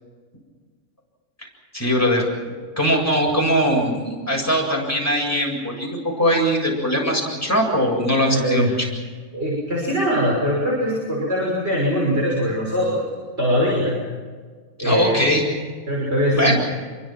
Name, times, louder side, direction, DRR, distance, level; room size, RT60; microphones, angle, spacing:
voice 1, 1.7-2.2 2.8-8.9 14.8-15.4 16.3-16.6, equal, 10° left, -1 dB, 7.7 m, -21 dB
voice 2, 8.2-8.8 9.3-13.1 13.4-14.0 14.8-15.4 15.9-16.6, equal, 45° right, -4 dB, 6.4 m, -22 dB
27.5 x 23.5 x 6.1 m, 1.5 s
omnidirectional pair, 1.6 m